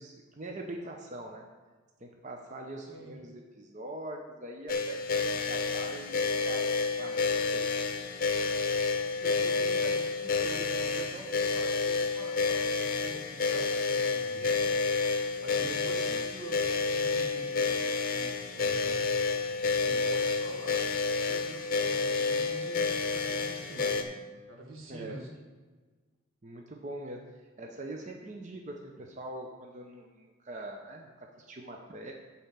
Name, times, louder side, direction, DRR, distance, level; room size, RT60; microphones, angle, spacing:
voice 1, 0.0-1.4 2.0-6.7 7.0-7.9 15.5-16.2 24.9-25.2 26.4-32.1, right 1 dB, 35° right, 1 dB, 0.8 m, -43 dB
sound 1, 4.7-24.0, left 4 dB, 45° left, 0.7 m, -29 dB
voice 2, 9.2-14.7 15.4-19.2 19.7-20.8 21.2-24.2 24.5-25.3, right 2 dB, 80° right, 0 dB, 1.8 m, -45 dB
8.9 x 4.4 x 7.4 m, 1.4 s
head